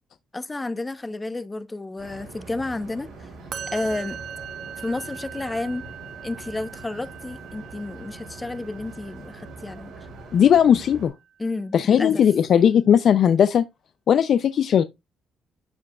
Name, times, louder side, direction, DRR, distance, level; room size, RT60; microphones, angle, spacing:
voice 1, 0.3-3.1 3.7-4.2 4.8-5.8 6.2-9.9 11.4-12.1, left 2 dB, 20° left, 0.8 m, -31 dB
sound 1, 2.0-11.1, right 2 dB, 85° right, 4.8 m, -43 dB
Musical instrument, 3.5-10.8, right 8 dB, 55° right, 1.2 m, -41 dB
voice 2, 10.3-11.1 11.7-13.6 14.1-14.8, left 8 dB, 60° left, 0.4 m, -17 dB
12.5 x 4.7 x 2.4 m
cardioid pair, 90°, 0 cm